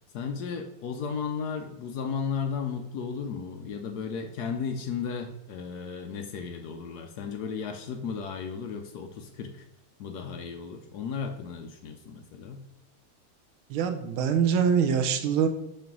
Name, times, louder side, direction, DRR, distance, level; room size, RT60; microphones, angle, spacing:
voice 1, 0.1-9.7 10.0-12.6, left 6 dB, 80° left, 5 dB, 0.9 m, -34 dB
voice 2, 13.7-15.5, right 7 dB, 75° right, 7 dB, 1.5 m, -24 dB
6.7 x 3.3 x 6.0 m, 0.86 s
omnidirectional pair, 2.4 m